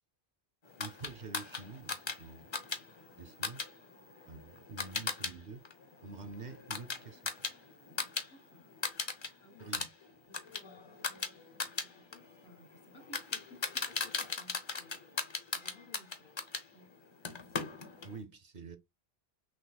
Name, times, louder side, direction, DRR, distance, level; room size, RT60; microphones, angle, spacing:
sound 1, 0.8-5.3 5.6-8.3 8.6-9.3 9.6-16.7 17.2-18.2, left 4 dB, 35° left, 0.6 m, -38 dB
voice 1, 0.8-2.5 3.1-3.6 4.3-5.6 6.0-7.4 9.6-9.9 18.0-18.8, right 4 dB, 55° right, 0.6 m, -47 dB
voice 2, 8.3-8.6 9.4-9.7 10.6-11.1 11.8-17.0, left 1 dB, 80° left, 1.5 m, -59 dB
6.0 x 2.8 x 2.2 m
omnidirectional pair, 1.0 m